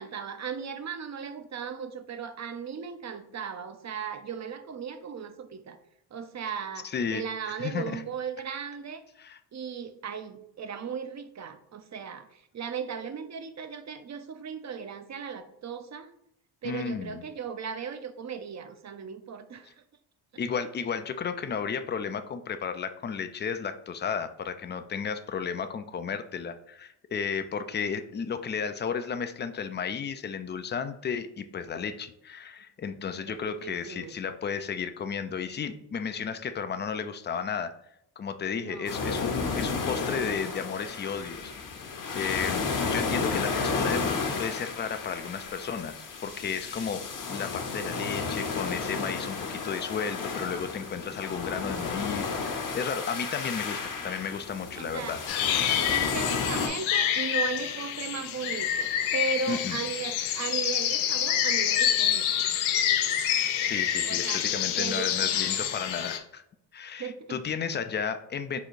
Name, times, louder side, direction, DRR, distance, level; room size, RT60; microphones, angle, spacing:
voice 1, 0.0-5.8 6.1-9.0 9.5-16.1 16.6-19.7 33.2-34.1 38.5-38.9 54.8-55.2 55.9-62.5 64.0-65.7 67.0-67.4, right 6 dB, 35° right, 10 dB, 0.6 m, -37 dB
voice 2, 6.8-8.0 9.2-9.4 16.6-17.2 20.4-37.7 38.2-41.5 42.1-55.5 59.5-59.8 63.6-66.4 66.7-68.6, left 6 dB, 25° left, 10 dB, 0.3 m, -33 dB
sound 1, 38.9-56.7, left 4 dB, 40° left, 0.8 m, -32 dB
sound 2, 55.3-66.2, left 10 dB, 80° left, 0.6 m, -27 dB
4.0 x 2.4 x 4.5 m, 0.75 s
supercardioid pair, 55°, 48 cm